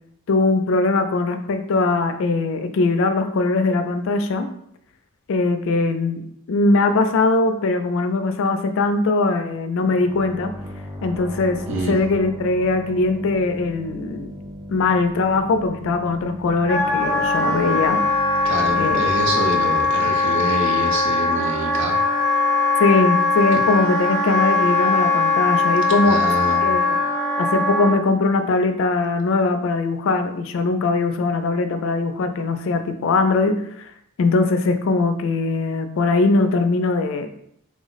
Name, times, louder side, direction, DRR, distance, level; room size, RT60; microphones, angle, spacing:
voice 1, 0.3-4.5 5.3-6.2 6.5-10.5 11.0-11.6 11.9-14.3 14.7-18.0 18.8-19.0 22.8-26.2 26.6-27.0 27.4-33.9 34.2-37.3, left 3 dB, 65° left, 8 dB, 0.4 m, -21 dB
sound 1, 9.8-21.3, equal, 10° right, 0.5 m, -37 dB
voice 2, 11.7-12.0 18.4-22.0 23.5-23.6 26.0-26.6, right 1 dB, 60° right, 2 dB, 0.7 m, -26 dB
Wind instrument woodwind instrument, 16.7-28.0, left 3 dB, 5° left, 0.9 m, -20 dB
3.3 x 2.0 x 3.9 m, 0.71 s
head